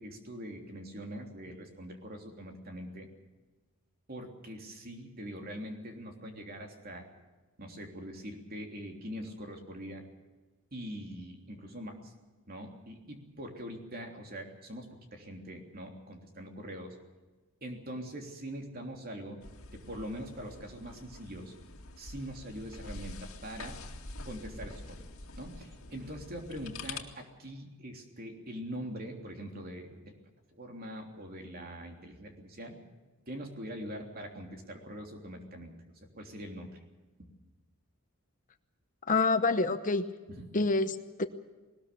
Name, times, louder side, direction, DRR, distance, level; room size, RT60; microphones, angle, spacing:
voice 1, 0.0-3.1 4.1-7.1 7.6-10.0 10.7-12.1 12.5-17.0 17.6-19.4 19.7-21.5 22.0-23.8 24.2-25.0 25.4-30.1 30.5-32.8 33.3-35.7 36.1-36.8 40.3-40.5, equal, 45° right, 3 dB, 3.3 m, -43 dB
sound 1, 19.4-27.0, left 3 dB, 80° left, 2.2 m, -46 dB
voice 2, 39.1-40.0 40.5-41.3, left 3 dB, 40° left, 10 dB, 0.9 m, -27 dB
20.5 x 19.5 x 6.9 m, 1.2 s
head